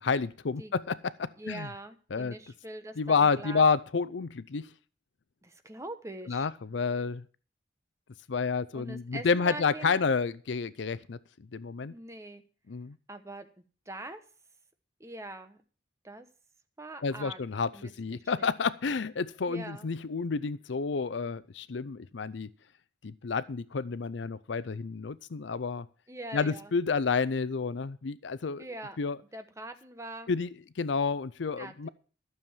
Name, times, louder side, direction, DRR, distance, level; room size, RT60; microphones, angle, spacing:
voice 1, 0.0-1.7 2.1-2.3 3.0-4.7 6.3-7.2 8.3-11.2 11.5-11.9 12.7-13.0 17.0-22.5 23.0-25.9 26.3-28.7 29.0-29.2 30.3-31.9, left 5 dB, 70° left, 18 dB, 0.5 m, -30 dB
voice 2, 1.4-3.6 5.4-6.5 8.7-10.0 11.9-12.4 13.1-13.5 13.9-14.2 15.0-15.6 16.0-16.3 16.8-17.4 17.7-17.9 18.2-18.5 19.5-19.9 26.1-26.7 28.6-29.0 29.3-30.3 31.6-31.9, right 2 dB, 15° right, 8 dB, 1.0 m, -43 dB
12.5 x 7.0 x 7.2 m, 0.39 s
head